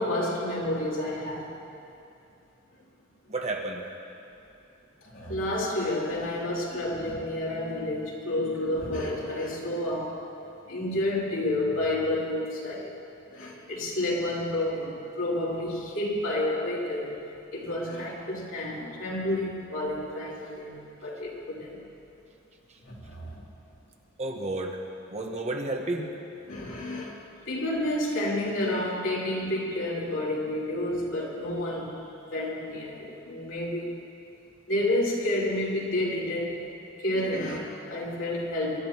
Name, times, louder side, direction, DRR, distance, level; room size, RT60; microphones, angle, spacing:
voice 1, 0.0-1.6 5.1-10.2 10.7-12.9 13.3-17.2 17.5-21.8 22.8-23.4 26.5-27.2 27.5-31.9 32.2-34.0 34.7-36.6 37.0-38.8, left 1 dB, 80° left, -5 dB, 3.0 m, -30 dB
voice 2, 3.3-3.8 24.2-24.8 25.1-26.1, right 2 dB, 35° right, 1 dB, 1.3 m, -31 dB
25.5 x 12.5 x 3.0 m, 2.7 s
head